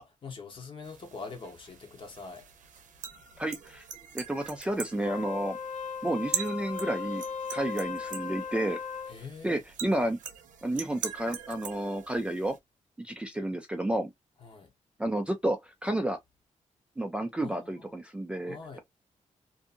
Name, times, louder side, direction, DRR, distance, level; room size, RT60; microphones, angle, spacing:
voice 1, 0.0-2.5 9.1-9.5 14.4-14.7 17.4-18.0 18.4-18.8, left 4 dB, 40° left, 1.0 m, -44 dB
sound 1, 0.8-12.6, right 7 dB, 80° right, 0.7 m, -42 dB
voice 2, 3.4-3.8 4.1-5.6 6.0-7.2 7.5-8.8 9.4-10.2 10.6-12.6 13.0-14.1 15.0-16.2 17.0-18.8, right 1 dB, 10° right, 0.4 m, -31 dB
Wind instrument woodwind instrument, 4.9-9.2, left 6 dB, 75° left, 0.8 m, -37 dB
2.6 x 2.5 x 2.5 m
wide cardioid pair, 160°, 13 cm